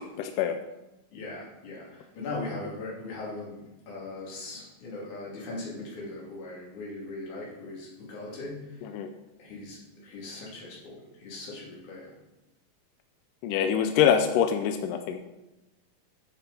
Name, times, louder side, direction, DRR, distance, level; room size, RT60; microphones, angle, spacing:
voice 1, 0.2-0.6 8.9-9.1 13.4-15.2, left 8 dB, 80° left, 7 dB, 2.0 m, -24 dB
voice 2, 1.1-8.8 9.4-12.1, left 2 dB, 55° left, -4 dB, 4.1 m, -39 dB
10.0 x 7.2 x 5.4 m, 1.0 s
omnidirectional pair, 4.2 m